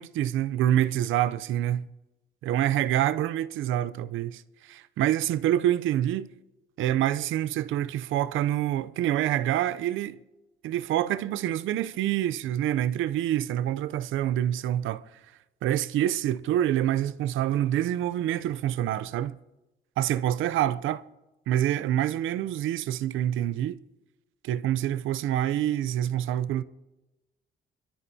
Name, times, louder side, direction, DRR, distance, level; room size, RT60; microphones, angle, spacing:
voice 1, 0.0-1.9 2.4-6.3 6.8-10.2 10.6-15.0 15.6-19.4 20.0-21.0 21.5-23.8 24.4-26.6, right 12 dB, 80° right, 0.6 m, -26 dB
23.0 x 13.0 x 2.8 m
cardioid pair, 90°, 20 cm